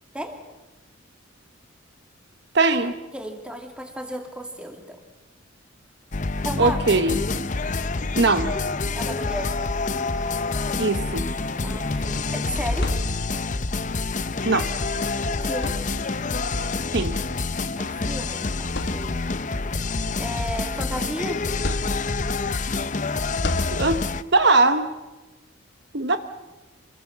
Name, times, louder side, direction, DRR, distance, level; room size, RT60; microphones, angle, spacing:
voice 1, 2.5-3.0 6.6-7.2 8.2-8.5 10.8-11.3 14.4-14.7 16.9-17.2 23.7-24.0 24.3-24.9 25.9-26.2, right 3 dB, 55° right, 9 dB, 1.0 m, -20 dB
voice 2, 3.1-5.0 6.4-6.8 8.9-9.7 11.6-12.9 15.4-15.8 17.8-19.2 20.2-21.5, equal, 5° right, 4 dB, 2.5 m, -33 dB
sound 1, 6.1-24.2, left 3 dB, 35° left, 0.7 m, -27 dB
sound 2, 12.8-13.6 14.9-15.0 15.5-16.4 17.5-17.6 18.2-18.3 18.7-19.5 20.0-21.1 21.6-22.4 23.4-24.3, left 1 dB, 55° left, 1.7 m, -32 dB
26.5 x 20.0 x 7.4 m, 1.1 s
head